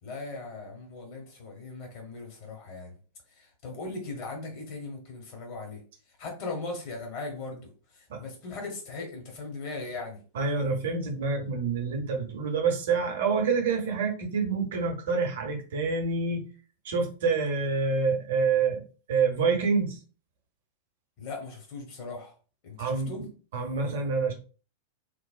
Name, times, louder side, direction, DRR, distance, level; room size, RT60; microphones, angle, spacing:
voice 1, 0.0-3.0 3.3-5.8 6.1-10.2 21.2-22.3 22.6-23.2, left 3 dB, 45° left, 1.0 m, -39 dB
voice 2, 10.3-16.4 16.8-18.8 19.1-20.0 22.8-23.3 23.5-24.3, right 4 dB, 55° right, 0.7 m, -27 dB
3.1 x 2.0 x 2.4 m
figure-of-eight pair, 90°, 0 cm